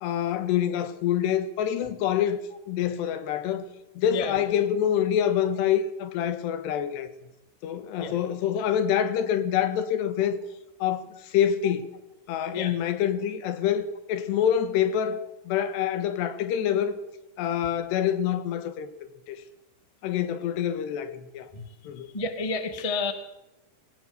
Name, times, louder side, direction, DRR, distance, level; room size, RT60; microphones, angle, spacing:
voice 1, 0.0-2.4 2.7-3.7 4.0-7.1 7.6-10.4 10.8-11.9 12.3-17.0 17.4-18.9 19.3-19.4 20.0-21.5 21.9-22.1, left 9 dB, 80° left, 3.6 m, -26 dB
voice 2, 22.1-23.1, left 4 dB, 25° left, 0.7 m, -30 dB
23.0 x 16.0 x 8.1 m
omnidirectional pair, 4.8 m